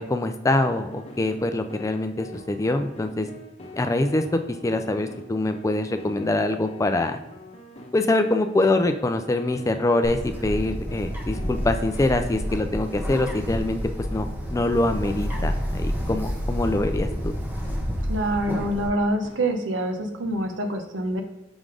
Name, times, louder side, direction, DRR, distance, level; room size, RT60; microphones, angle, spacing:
voice 1, 0.0-3.3 3.7-4.2 4.6-7.2 7.9-13.8 14.1-17.3, left 2 dB, 15° left, 7 dB, 0.3 m, -24 dB
sound 1, 0.7-12.3 12.8-13.0 13.5-13.6 14.1-14.2 14.7-14.9 15.4-15.5 16.1-16.2 16.9-17.0 17.6-17.8 18.4-18.5 19.2-19.4, left 1 dB, 35° left, 1.0 m, -45 dB
Bird, 10.0-18.9, equal, 10° right, 1.0 m, -29 dB
voice 2, 18.1-21.2, right 1 dB, 85° right, 5 dB, 0.9 m, -26 dB
6.1 x 3.9 x 4.9 m, 0.93 s
head